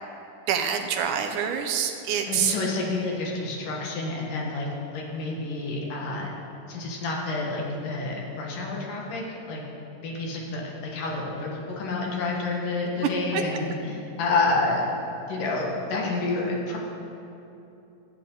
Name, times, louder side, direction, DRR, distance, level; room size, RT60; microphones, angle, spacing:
voice 1, 0.5-2.6 13.0-13.4, right 8 dB, 80° right, 6 dB, 2.2 m, -26 dB
voice 2, 2.3-4.7 4.9-6.3 6.7-9.6 10.0-14.9 15.3-16.8, left 3 dB, 75° left, -2 dB, 3.1 m, -29 dB
14.0 x 9.0 x 3.8 m, 2.8 s
omnidirectional pair, 3.8 m